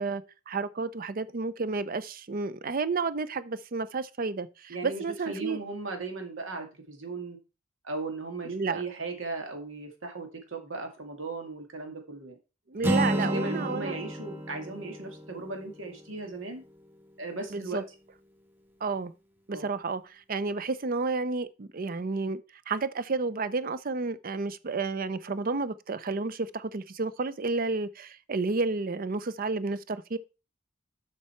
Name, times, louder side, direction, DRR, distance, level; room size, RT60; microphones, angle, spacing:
voice 1, 0.0-5.6 8.5-8.8 12.7-14.0 17.5-17.8 18.8-19.1 19.5-30.2, right 4 dB, 45° right, 0.6 m, -31 dB
voice 2, 4.7-7.4 7.8-12.4 13.0-16.6 17.2-17.8 19.5-19.7, right 3 dB, 85° right, 2.2 m, -37 dB
Acoustic guitar, 12.8-16.8, right 1 dB, 10° right, 1.4 m, -32 dB
7.3 x 6.0 x 4.4 m
head